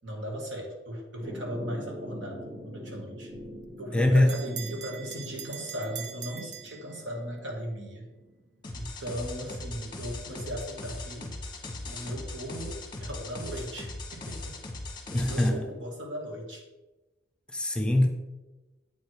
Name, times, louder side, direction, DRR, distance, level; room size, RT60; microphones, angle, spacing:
voice 1, 0.0-3.3 3.8-8.1 8.7-11.3 11.9-14.6 15.2-16.7, equal, 80° right, 1 dB, 1.8 m, -37 dB
sound 1, 1.2-9.0, equal, 40° right, 1.6 m, -44 dB
Bell, 3.3-7.4, right 9 dB, 65° right, 0.6 m, -43 dB
voice 2, 3.9-4.3 15.1-15.6 17.5-18.1, left 1 dB, 5° left, 4 dB, 0.6 m, -22 dB
sound 2, 8.6-15.5, left 2 dB, 25° left, 1.1 m, -39 dB
8.1 x 4.8 x 4.6 m, 1.1 s
head